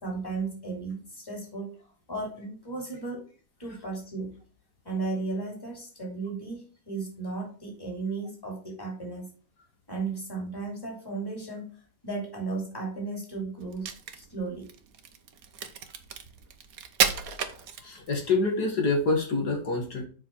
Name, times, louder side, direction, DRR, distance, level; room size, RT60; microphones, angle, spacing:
voice 1, 0.0-1.7 2.1-3.2 3.6-4.4 4.8-9.3 9.9-11.8 12.0-14.7, right 3 dB, 10° left, 0 dB, 3.3 m, -35 dB
Crack, 13.7-18.3, right 7 dB, 60° right, 1.4 m, -32 dB
voice 2, 17.5-20.0, left 3 dB, 70° left, 1 dB, 2.4 m, -27 dB
7.4 x 5.4 x 4.7 m, 0.40 s
omnidirectional pair, 1.8 m